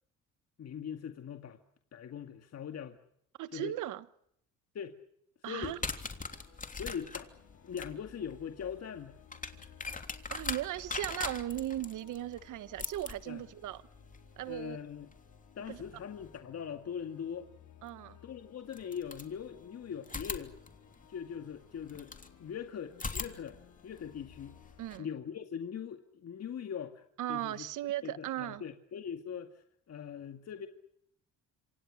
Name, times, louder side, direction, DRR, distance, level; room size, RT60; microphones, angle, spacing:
voice 1, 0.6-1.6 1.9-3.0 3.5-3.7 4.7-5.0 5.4-5.8 6.7-7.3 7.6-9.2 13.3-13.4 14.5-15.1 15.6-17.5 18.2-20.6 21.1-22.1 22.4-24.6 25.0-27.7 28.0-30.7, left 8 dB, 55° left, 2.2 m, -41 dB
voice 2, 3.4-4.1 5.4-5.8 10.3-13.8 14.4-14.8 15.7-15.8 17.8-18.2 24.8-25.1 27.2-28.6, right 13 dB, 85° right, 1.4 m, -37 dB
sound 1, 5.6-16.4 17.9-18.0 18.7-19.7 20.0-22.3 22.9-25.0, left 4 dB, 25° left, 3.3 m, -43 dB
sound 2, 6.1-24.9, left 9 dB, 85° left, 5.4 m, -60 dB
27.5 x 26.5 x 6.5 m
cardioid pair, 90°, 30 cm